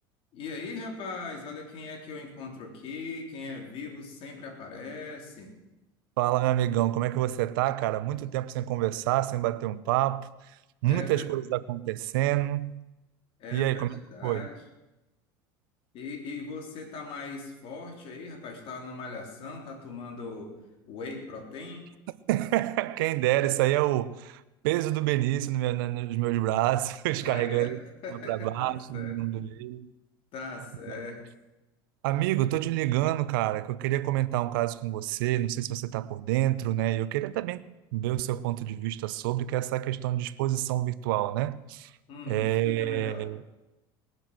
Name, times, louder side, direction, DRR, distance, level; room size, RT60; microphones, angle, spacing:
voice 1, 0.3-5.5 10.9-11.3 13.4-14.6 15.9-20.5 20.9-21.9 27.2-29.2 30.3-31.2 42.1-43.3, left 4 dB, 55° left, 3.9 m, -40 dB
voice 2, 6.2-10.3 10.8-12.8 13.5-14.5 22.3-27.8 28.1-29.9 32.0-37.6 37.9-41.9 42.3-43.4, right 15 dB, 80° right, 0.7 m, -28 dB
20.5 x 7.7 x 7.5 m
supercardioid pair, 100°, 11 cm